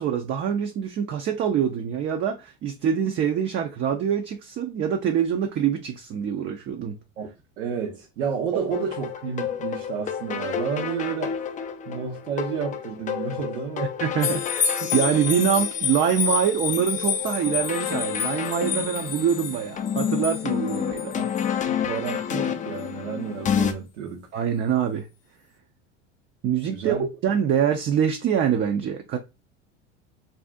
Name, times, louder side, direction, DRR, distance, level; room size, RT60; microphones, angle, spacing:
voice 1, 0.0-7.0 14.0-21.1 24.3-25.1 26.4-29.2, right 8 dB, 35° right, 0.5 m, -25 dB
voice 2, 7.6-11.4 11.9-13.9 21.2-21.3 21.7-24.2 26.7-27.0, right 7 dB, 75° right, 0.9 m, -31 dB
sound 1, 8.7-23.7, left 8 dB, 20° left, 0.4 m, -30 dB
sound 2, 14.2-21.5 22.1-22.2, left 7 dB, 45° left, 0.7 m, -29 dB
2.7 x 2.4 x 3.4 m
hypercardioid pair, 90°, 36 cm